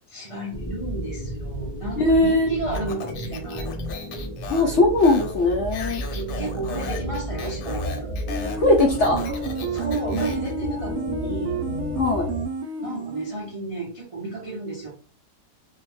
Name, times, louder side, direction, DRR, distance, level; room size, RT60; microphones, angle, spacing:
voice 1, 0.1-3.6 6.0-8.1 9.7-11.6 12.8-14.9, right 3 dB, 45° right, -4 dB, 0.4 m, -32 dB
sound 1, 0.5-12.4, right 1 dB, 30° left, 0.5 m, -32 dB
voice 2, 2.0-2.5 4.5-6.0 8.6-9.4 12.0-12.3, left 2 dB, 65° left, -1 dB, 0.7 m, -19 dB
Speech, 2.7-10.5, left 5 dB, 90° left, 1.2 m, -37 dB
sound 2, 8.3-13.5, right 2 dB, 75° right, 1.0 m, -31 dB
2.7 x 2.1 x 3.0 m, 0.37 s
omnidirectional pair, 1.8 m